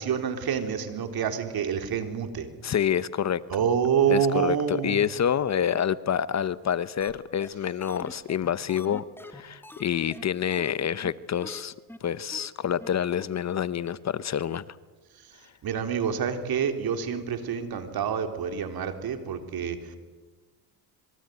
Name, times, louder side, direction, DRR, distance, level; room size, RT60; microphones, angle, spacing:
voice 1, 0.0-2.5 3.5-5.0 15.6-20.0, right 7 dB, 55° right, 7 dB, 3.8 m, -27 dB
voice 2, 2.6-3.4 4.1-11.7 12.0-14.8, left 9 dB, 40° left, 16 dB, 0.9 m, -27 dB
sound 1, 7.0-7.1 7.4-7.5 7.8-9.8 10.1-10.2 10.5-10.7 11.0-11.1 11.4-11.6 11.9-12.0 12.3-12.5 12.8-12.9 13.2-13.3, left 1 dB, 5° left, 2.0 m, -43 dB
27.0 x 22.0 x 9.3 m, 1.3 s
cardioid pair, 100°, 43 cm